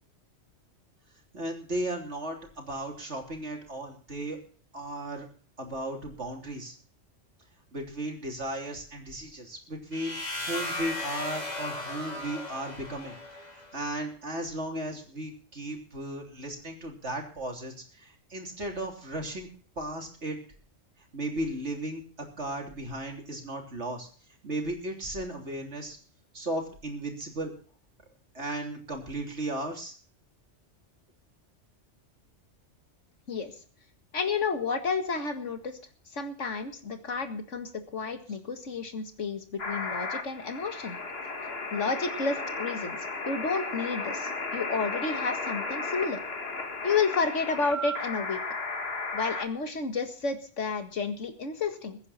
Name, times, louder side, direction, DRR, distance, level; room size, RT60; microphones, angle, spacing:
voice 1, 1.3-4.4 4.7-5.3 5.6-6.8 7.7-10.2 10.5-13.2 13.5-19.5 19.8-20.4 21.1-24.1 24.4-26.0 26.3-27.5 28.3-30.0, right 1 dB, 70° right, 2 dB, 3.6 m, -35 dB
sound 1, 9.9-13.8, left 1 dB, 35° left, 2.9 m, -36 dB
voice 2, 34.1-35.8 36.1-41.0 41.7-43.0 43.3-46.2 46.8-48.4 49.1-52.0, left 4 dB, 85° left, 7 dB, 2.2 m, -31 dB
sound 2, 39.6-49.5, left 3 dB, 55° left, 1.9 m, -34 dB
22.0 x 9.7 x 4.2 m, 0.43 s
omnidirectional pair, 1.2 m